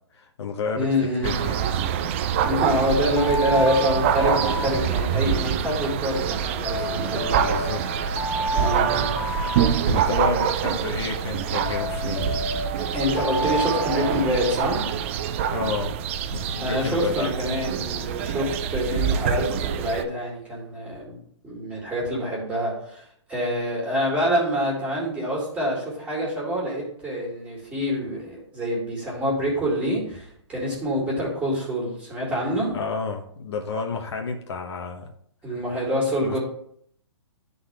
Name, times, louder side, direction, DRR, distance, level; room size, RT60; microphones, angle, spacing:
voice 1, 0.1-0.9 1.2-1.6 7.4-8.0 9.8-12.4 15.5-16.0 16.3-17.3 32.7-35.1 36.2-36.4, left 5 dB, 60° left, 2 dB, 1.1 m, -30 dB
voice 2, 0.7-1.3 2.4-7.6 8.5-9.1 12.9-14.9 16.6-21.2 21.4-32.7 35.4-36.4, equal, 10° right, -4 dB, 2.2 m, -26 dB
sound 1, 1.2-20.0, right 8 dB, 25° right, 0.3 m, -26 dB
Alarm, 2.7-5.3 6.7-10.3 11.7-14.9, equal, 85° left, 2.2 m, -31 dB
11.0 x 4.0 x 3.4 m, 0.66 s
hypercardioid pair, 155°, 16 cm